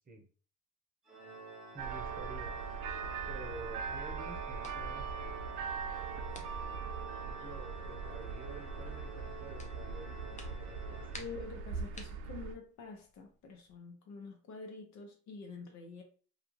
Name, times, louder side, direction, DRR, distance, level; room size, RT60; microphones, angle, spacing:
Organ, 1.1-11.8, right 3 dB, ahead, 1.1 m, -50 dB
voice 1, 1.7-2.5 3.3-5.4 6.4-6.5 7.2-11.3, right 3 dB, 30° right, 0.8 m, -50 dB
sound 1, 1.8-12.5, right 5 dB, 80° right, 0.5 m, -41 dB
sound 2, 4.5-13.8, left 2 dB, 25° left, 0.6 m, -58 dB
voice 2, 11.1-16.0, left 4 dB, 65° left, 0.9 m, -47 dB
2.4 x 2.4 x 3.1 m
supercardioid pair, 75°, 31 cm